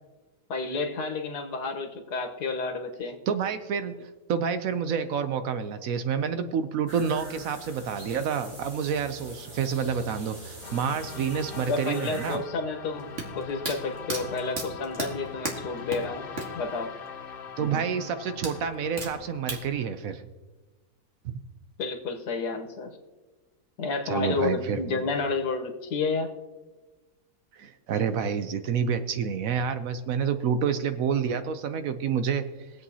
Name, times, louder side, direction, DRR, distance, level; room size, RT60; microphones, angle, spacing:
voice 1, 0.5-3.2 11.5-13.1 13.3-16.3 16.5-16.9 21.8-23.0 23.8-26.3, left 4 dB, 85° left, 4 dB, 1.7 m, -30 dB
voice 2, 3.3-12.4 17.6-20.2 21.2-21.4 24.1-25.0 27.5-32.4, right 7 dB, 65° right, 10 dB, 1.0 m, -28 dB
sound 1, 6.9-12.4, right 1 dB, 85° right, 3.7 m, -44 dB
sound 2, 10.6-19.9, left 7 dB, 55° left, 0.6 m, -42 dB
sound 3, 13.0-16.7 16.9-17.0 18.4-19.6, right 3 dB, 50° right, 1.8 m, -33 dB
22.0 x 8.1 x 2.8 m, 1.2 s
omnidirectional pair, 1.7 m